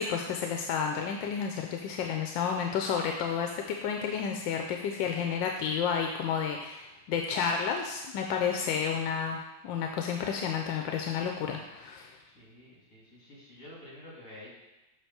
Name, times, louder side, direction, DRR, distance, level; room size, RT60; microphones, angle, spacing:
voice 1, 0.0-12.2, left 7 dB, 90° left, 2 dB, 1.3 m, -31 dB
voice 2, 12.2-14.5, left 1 dB, 60° left, -7 dB, 3.3 m, -49 dB
7.8 x 2.9 x 6.1 m, 1.0 s
omnidirectional pair, 2.0 m